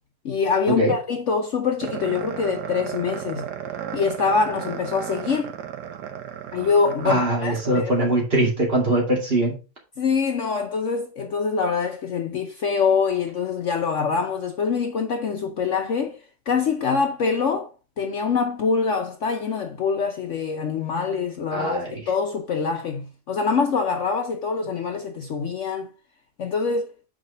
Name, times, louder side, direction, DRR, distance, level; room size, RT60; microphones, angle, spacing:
voice 1, 0.2-3.5 3.9-5.5 6.5-7.9 10.0-17.7 18.0-25.9 26.4-26.9, left 5 dB, 55° left, 0.9 m, -24 dB
sound 1, 1.8-8.2, right 9 dB, 90° right, 1.5 m, -34 dB
voice 2, 7.0-9.6 21.5-21.9, right 1 dB, 35° right, 2.5 m, -22 dB
6.2 x 4.9 x 5.1 m
omnidirectional pair, 1.7 m